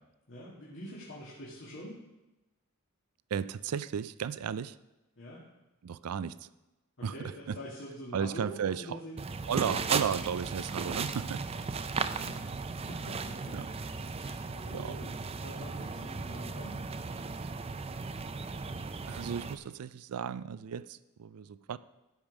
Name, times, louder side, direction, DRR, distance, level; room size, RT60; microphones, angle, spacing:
voice 1, 0.3-2.0 5.2-5.4 7.0-9.2 11.5-12.4 12.7-13.6 14.1-15.1 15.4-16.8, equal, 55° left, -7 dB, 2.2 m, -45 dB
voice 2, 3.3-4.8 5.8-6.5 7.0-7.6 8.1-9.0 9.5-11.5 13.5-13.7 14.7-15.0 19.1-21.8, right 7 dB, 85° right, 17 dB, 0.4 m, -34 dB
sound 1, 9.2-19.6, right 4 dB, 25° right, 0.4 m, -36 dB
15.5 x 5.3 x 6.1 m, 1.0 s
head